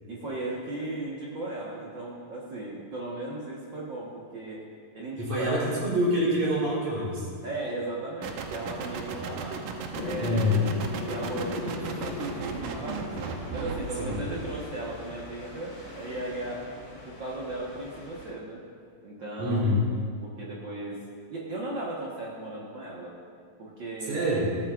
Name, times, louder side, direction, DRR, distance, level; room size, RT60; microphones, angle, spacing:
voice 1, 0.1-4.6 4.9-5.8 7.4-9.6 10.0-10.6 10.9-13.2 13.5-16.6 17.0-18.6 19.0-19.7 20.2-21.0 21.3-23.1 23.6-24.3, right 2 dB, 90° right, -5 dB, 1.0 m, -36 dB
voice 2, 5.2-7.3 9.1-9.2 10.2-10.7 14.0-14.1 19.4-19.9 24.0-24.5, left 1 dB, 50° right, -6 dB, 4.9 m, -26 dB
sound 1, 8.2-14.6, right 5 dB, 75° right, 2.0 m, -36 dB
sound 2, 9.9-17.1, left 7 dB, 90° left, 2.6 m, -40 dB
sound 3, 11.8-18.3, equal, 30° left, 4.1 m, -46 dB
16.5 x 13.5 x 2.5 m, 2.2 s
omnidirectional pair, 4.4 m